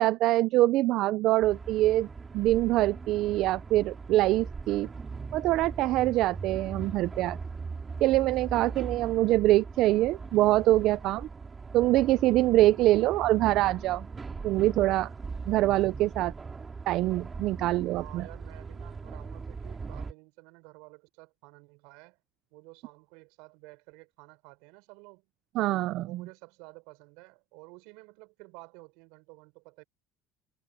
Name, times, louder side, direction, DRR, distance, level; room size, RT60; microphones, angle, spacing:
voice 1, 0.0-2.1 2.3-4.9 5.3-7.4 8.0-11.3 11.7-14.1 14.4-15.1 15.5-16.3 16.9-18.3 25.5-26.3, right 16 dB, 65° right, 0.5 m, -24 dB
sound 1, 1.4-20.1, right 4 dB, 25° right, 2.6 m, -40 dB
voice 2, 18.0-22.2 22.5-25.2 26.0-29.8, right 27 dB, 80° right, 5.7 m, -52 dB
supercardioid pair, 110°, 0 cm